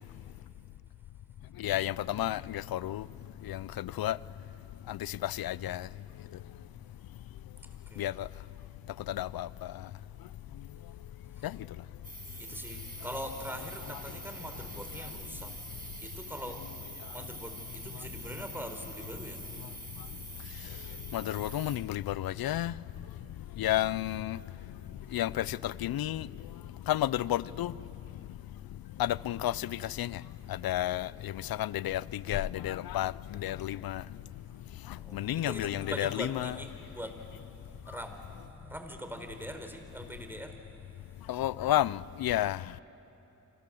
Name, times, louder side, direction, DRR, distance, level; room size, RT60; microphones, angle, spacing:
voice 1, 1.6-3.0 3.5-4.2 4.9-5.9 8.0-8.3 9.1-9.5 11.4-11.5 21.1-22.7 23.6-24.4 25.1-26.3 26.9-27.7 29.0-30.2 30.5-31.3 31.6-34.0 35.1-36.5 41.3-42.6, left 13 dB, 90° left, 0.5 m, -31 dB
voice 2, 7.6-8.3 11.3-11.6 12.4-15.6 16.0-19.7 23.4-23.7 24.5-25.2 34.7-41.4, equal, 5° right, 4.2 m, -44 dB
sound 1, 12.0-21.8, right 2 dB, 25° right, 7.0 m, -45 dB
28.0 x 26.0 x 7.7 m
cardioid pair, 45°, 35 cm